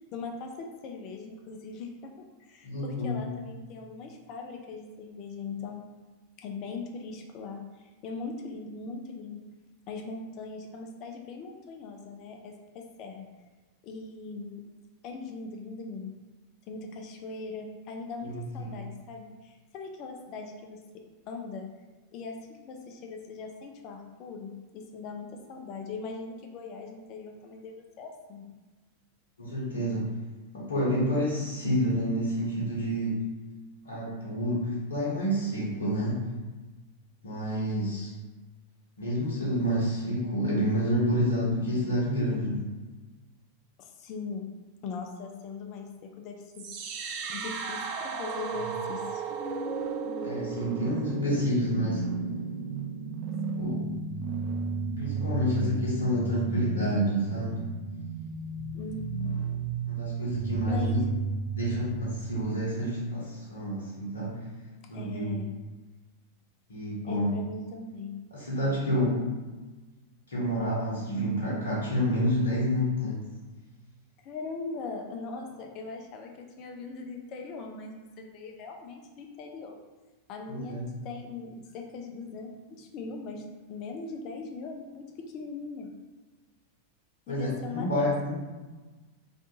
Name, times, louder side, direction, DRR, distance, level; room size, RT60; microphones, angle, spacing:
voice 1, 0.1-5.8 6.4-9.4 9.9-13.3 13.8-14.6 15.0-16.1 16.7-21.7 22.1-28.4 37.6-38.1 43.8-44.5 44.8-46.7 47.3-49.2 53.5-53.7 58.7-59.4 60.7-61.1 64.9-65.5 67.1-68.2 74.2-79.7 80.3-85.9 87.3-88.1, left 4 dB, 40° left, 3 dB, 0.3 m, -40 dB
voice 2, 2.6-3.3 18.2-18.7 29.4-30.1 30.5-33.2 33.8-36.3 37.2-38.1 39.0-42.7 50.2-52.0 53.6-53.8 54.9-57.6 59.9-61.0 61.5-64.4 64.9-65.4 66.7-67.3 68.3-69.3 70.3-73.2 80.5-80.8 87.3-88.3, equal, 70° left, -6 dB, 0.7 m, -29 dB
sound 1, 46.5-62.6, right 5 dB, 45° right, 0.3 m, -34 dB
2.5 x 2.3 x 2.8 m, 1.2 s
figure-of-eight pair, 90°, 0 cm